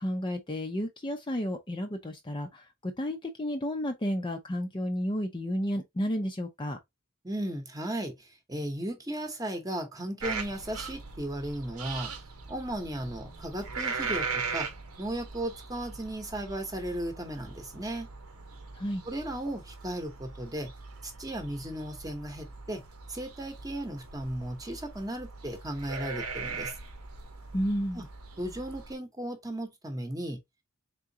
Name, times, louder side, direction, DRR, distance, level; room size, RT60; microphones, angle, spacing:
voice 1, 0.0-6.8 18.8-19.0 27.5-28.1, equal, 20° left, 0.6 m, -32 dB
voice 2, 7.2-12.1 12.5-14.7 15.0-18.1 19.0-20.7 21.0-22.8 23.1-26.7 27.9-28.1 28.4-30.4, right 1 dB, 15° right, 1.0 m, -36 dB
sound 1, 10.2-28.9, right 5 dB, 85° right, 1.1 m, -40 dB
3.7 x 3.7 x 2.7 m
head